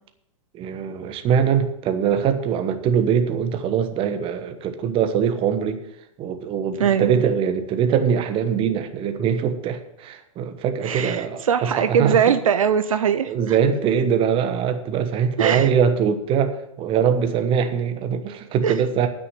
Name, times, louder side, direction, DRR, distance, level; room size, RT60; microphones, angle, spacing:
voice 1, 0.5-5.8 6.2-12.2 13.3-19.1, right 7 dB, 30° right, 8 dB, 1.3 m, -22 dB
voice 2, 6.8-7.2 10.8-13.6 15.4-15.7 18.6-18.8, right 8 dB, 80° right, 10 dB, 0.7 m, -21 dB
9.3 x 6.5 x 8.3 m, 0.80 s
hypercardioid pair, 115°, 17 cm